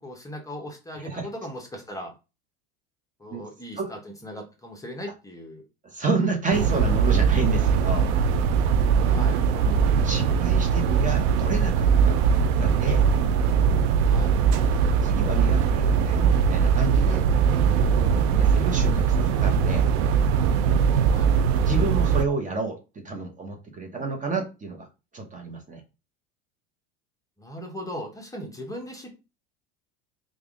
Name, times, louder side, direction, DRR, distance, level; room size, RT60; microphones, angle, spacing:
voice 1, 0.0-2.1 3.2-5.6 9.1-9.4 14.0-14.3 21.1-21.3 27.4-29.1, equal, 10° left, 1 dB, 0.9 m, -38 dB
voice 2, 1.0-1.3 3.3-3.4 3.8-3.9 5.8-8.1 9.5-13.0 14.5-14.7 15.0-17.2 17.7-19.8 21.7-24.9 25.1-25.8, right 4 dB, 25° right, 3 dB, 0.9 m, -30 dB
sound 1, 6.5-22.2, right 6 dB, 75° right, 0.5 m, -21 dB
3.4 x 2.4 x 3.6 m, 0.29 s
supercardioid pair, 105°, 32 cm